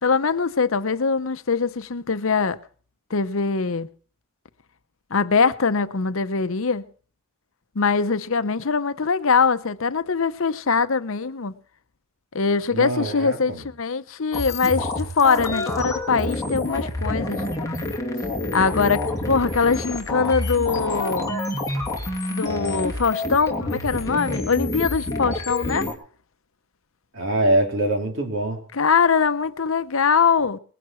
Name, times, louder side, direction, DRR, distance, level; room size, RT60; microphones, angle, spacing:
voice 1, 0.0-2.6 3.1-3.9 5.1-6.8 7.7-11.5 12.3-17.4 18.5-21.4 22.3-25.9 28.7-30.6, left 5 dB, 65° left, 0.8 m, -22 dB
voice 2, 12.7-13.6 27.1-28.6, right 1 dB, 60° right, 3.5 m, -23 dB
sound 1, 14.3-25.9, left 2 dB, 15° left, 2.6 m, -28 dB
20.5 x 11.0 x 4.5 m
head